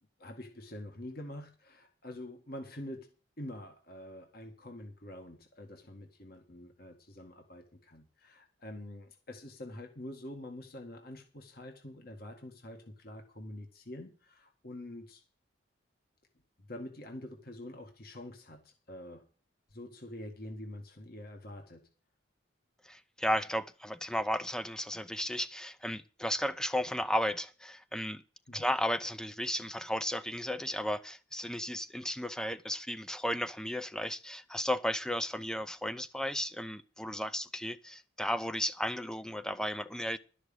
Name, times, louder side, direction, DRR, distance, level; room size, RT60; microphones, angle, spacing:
voice 1, 0.2-3.1 3.4-15.2 16.6-19.3 19.7-21.9 28.5-28.7, left 1 dB, 45° left, 1.9 m, -46 dB
voice 2, 22.8-28.2 28.5-40.2, equal, 5° left, 0.6 m, -34 dB
12.5 x 6.5 x 8.8 m
head